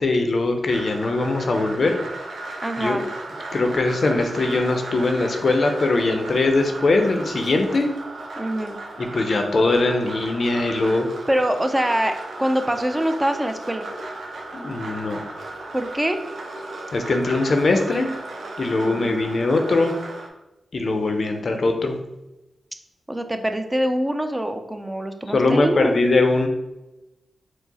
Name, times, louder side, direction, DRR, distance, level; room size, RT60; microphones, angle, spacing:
voice 1, 0.0-1.9 2.8-3.0 3.5-7.9 9.0-11.1 14.5-15.2 16.9-18.1 18.6-19.9 20.7-22.0 25.3-26.5, left 2 dB, 60° left, 5 dB, 0.5 m, -21 dB
sound 1, 0.7-20.3, right 2 dB, 75° right, 0.7 m, -36 dB
voice 2, 2.6-3.1 8.4-8.8 11.3-13.9 15.7-16.2 18.8-19.3 23.1-26.0, equal, 15° right, 7 dB, 0.5 m, -24 dB
4.5 x 2.0 x 4.0 m, 0.98 s
supercardioid pair, 40°, 0 cm